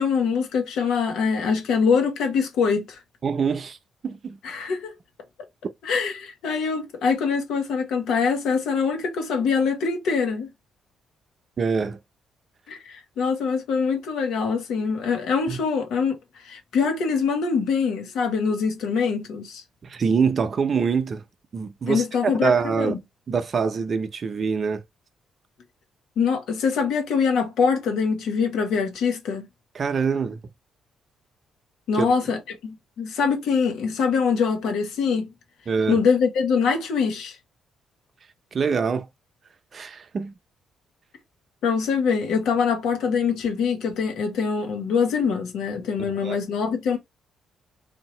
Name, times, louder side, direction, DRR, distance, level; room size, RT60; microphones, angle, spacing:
voice 1, 0.0-3.0 4.4-4.9 5.8-10.5 12.7-19.6 21.9-23.0 26.2-29.5 31.9-35.3 35.9-37.4 41.6-47.0, left 5 dB, 80° left, 1.4 m, -24 dB
voice 2, 3.2-3.8 4.0-4.4 11.6-12.0 15.5-15.6 19.8-21.2 21.5-22.9 23.3-24.8 29.7-30.4 31.9-32.1 35.7-36.0 38.5-39.1 39.7-40.3 46.2-46.4, right 5 dB, 45° right, 0.7 m, -24 dB
3.6 x 2.8 x 4.3 m
cardioid pair, 90°, 0 cm